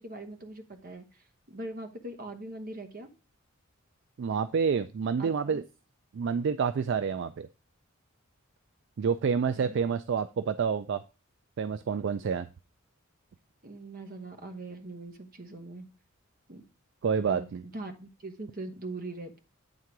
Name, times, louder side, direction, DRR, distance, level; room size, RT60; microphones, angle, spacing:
voice 1, 0.0-3.1 5.2-5.6 9.6-9.7 13.6-15.9 16.5-16.6 17.2-19.4, right 2 dB, 45° right, 7 dB, 1.0 m, -42 dB
voice 2, 4.2-5.6 6.1-7.5 9.0-11.0 11.6-12.5 17.0-17.6, right 6 dB, 60° right, 12 dB, 0.3 m, -28 dB
9.0 x 3.7 x 4.6 m, 0.31 s
head